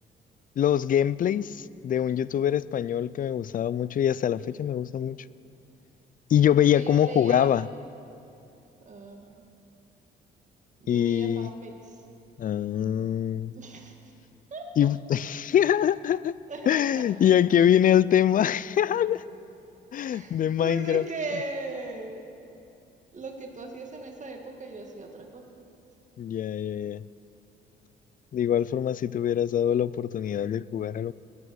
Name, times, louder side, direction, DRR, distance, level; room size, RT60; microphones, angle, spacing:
voice 1, 0.6-5.2 6.3-7.7 10.9-11.5 12.4-13.5 14.8-16.4 16.7-19.2 19.9-21.0 26.2-27.0 28.3-31.1, left 10 dB, 45° left, 19 dB, 0.4 m, -24 dB
voice 2, 6.7-7.5 8.8-9.4 10.8-12.1 13.5-14.1 14.5-14.9 16.5-17.1 20.0-22.2 23.1-25.5, right 3 dB, 40° right, 3 dB, 2.0 m, -38 dB
19.0 x 9.7 x 6.4 m, 2.7 s
cardioid pair, 90°, 20 cm